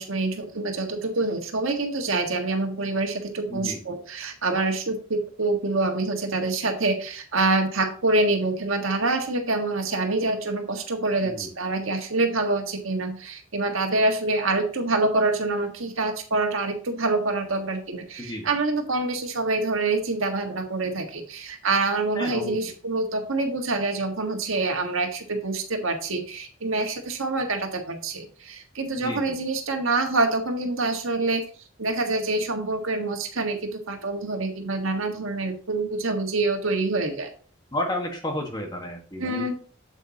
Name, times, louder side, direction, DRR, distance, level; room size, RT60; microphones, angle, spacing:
voice 1, 0.0-31.5 31.8-37.3 39.2-39.5, right 2 dB, 80° right, 4 dB, 1.6 m, -26 dB
voice 2, 11.2-11.5 18.2-18.5 22.1-22.5 28.9-29.3 37.7-39.5, left 1 dB, 20° left, 2 dB, 1.5 m, -31 dB
8.3 x 8.0 x 2.9 m, 0.40 s
head